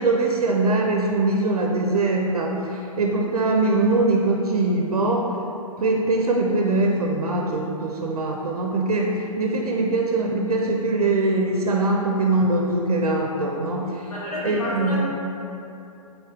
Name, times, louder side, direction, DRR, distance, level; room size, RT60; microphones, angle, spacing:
voice 1, 0.0-5.3 5.8-14.1 14.4-15.0, right 2 dB, 85° right, 0 dB, 0.4 m, -22 dB
voice 2, 14.1-15.0, left 1 dB, 80° left, -7 dB, 1.2 m, -30 dB
3.9 x 2.8 x 3.5 m, 2.8 s
hypercardioid pair, 130°, 19 cm